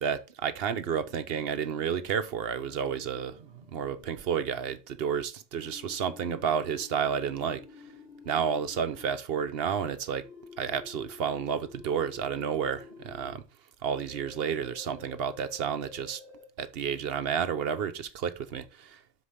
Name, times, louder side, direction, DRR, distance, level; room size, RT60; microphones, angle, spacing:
voice 1, 0.0-7.6 8.3-10.3 10.6-13.4 13.8-16.2 16.6-19.0, right 7 dB, 65° right, 0.9 m, -31 dB
sound 1, 1.0-4.5 5.6-9.1 10.2-13.4 14.1-16.5, left 4 dB, 80° left, 4.5 m, -51 dB
6.4 x 4.9 x 5.6 m
omnidirectional pair, 1.1 m